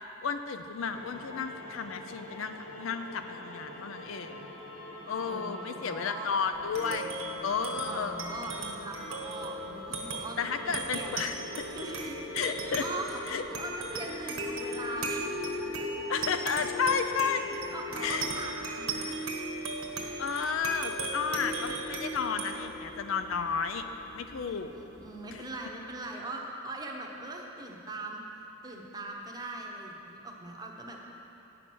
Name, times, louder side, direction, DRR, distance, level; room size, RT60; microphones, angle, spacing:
voice 1, 0.2-4.5 5.1-7.1 7.4-8.2 10.4-11.6 12.3-12.9 13.3-13.4 16.1-17.5 18.0-18.3 20.0-23.9 24.1-24.7 25.3-25.5, left 6 dB, 70° left, 8 dB, 0.4 m, -32 dB
sound 1, 0.8-18.3, left 1 dB, 90° left, 1.3 m, -45 dB
voice 2, 5.2-6.4 7.9-11.1 11.7-15.3 17.5-19.4 24.5-28.2 28.6-31.0, right 2 dB, 20° right, 0 dB, 0.8 m, -41 dB
sound 2, 6.5-25.4, right 2 dB, 85° right, 1.3 m, -37 dB
9.1 x 5.9 x 6.1 m, 3.0 s
head